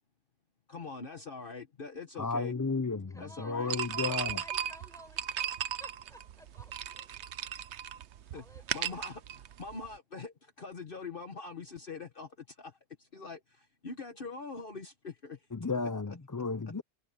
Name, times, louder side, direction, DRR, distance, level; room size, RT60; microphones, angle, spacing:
voice 1, 0.7-2.5 3.2-3.7 8.3-8.4 8.7-15.4, left 4 dB, 50° left, 1.5 m, -43 dB
voice 2, 2.2-4.4 15.5-16.8, left 4 dB, 20° left, 0.5 m, -33 dB
voice 3, 3.1-7.5 8.3-9.1, equal, 5° left, 6.5 m, -55 dB
sound 1, 3.7-9.9, right 9 dB, 80° right, 1.0 m, -37 dB
omnidirectional pair, 1.2 m